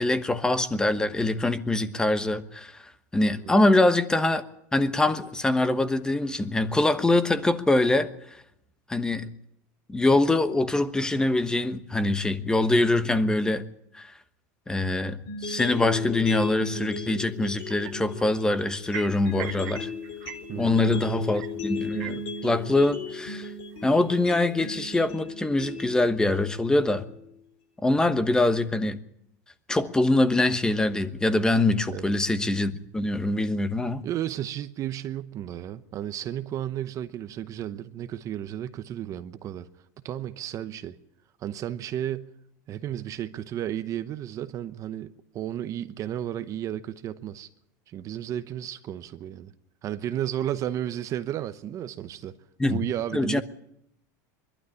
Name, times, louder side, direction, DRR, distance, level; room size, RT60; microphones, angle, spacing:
voice 1, 0.0-4.4 4.7-8.1 8.9-9.3 9.9-13.6 13.9-14.1 14.7-19.9 20.6-23.5 23.8-27.0 27.8-29.0 29.7-34.0 52.6-52.8 53.1-53.4, left 2 dB, 10° left, 1.1 m, -24 dB
sound 1, 15.3-27.3, left 4 dB, 60° left, 7.4 m, -36 dB
sound 2, 17.4-17.5 17.7-18.2 18.7-20.8 21.2-21.5 21.8-22.7 23.1-23.2 23.5-23.9 24.2-24.7, right 16 dB, 65° right, 1.6 m, -40 dB
voice 2, 20.5-21.1 31.9-32.1 34.0-39.7 40.0-41.0 41.4-42.3 42.7-47.5 47.9-49.5 49.8-52.3 52.7-53.4, right 11 dB, 35° right, 0.9 m, -33 dB
22.0 x 12.0 x 9.9 m
supercardioid pair, 140°, 9 cm